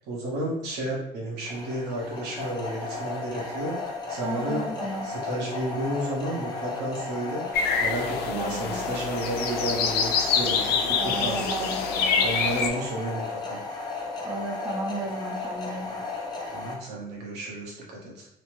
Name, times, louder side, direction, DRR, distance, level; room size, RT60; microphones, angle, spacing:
voice 1, 0.0-3.8 4.1-4.6 5.0-7.4 7.8-11.7 12.2-13.6 16.5-18.3, right 1 dB, 80° right, -3 dB, 1.0 m, -32 dB
sound 1, 1.4-16.8, left 3 dB, 25° left, 0.7 m, -35 dB
voice 2, 4.2-5.1 8.2-8.9 11.0-12.2 14.2-16.0, right 1 dB, 15° right, -1 dB, 0.6 m, -34 dB
sound 2, 7.5-12.7, left 6 dB, 75° left, 0.4 m, -26 dB
3.2 x 2.1 x 3.0 m, 0.78 s
cardioid pair, 110°, 17 cm